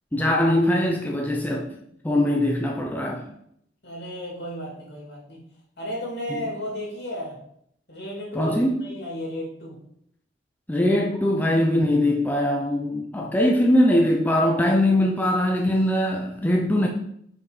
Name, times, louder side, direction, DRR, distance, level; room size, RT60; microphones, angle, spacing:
voice 1, 0.1-1.7 2.0-3.2 6.3-6.4 8.3-8.7 10.7-16.9, left 1 dB, 10° left, 0 dB, 0.6 m, -21 dB
voice 2, 3.8-5.4 5.8-7.4 7.9-9.8, equal, 60° left, -3 dB, 3.0 m, -34 dB
5.7 x 4.9 x 4.8 m, 0.72 s
head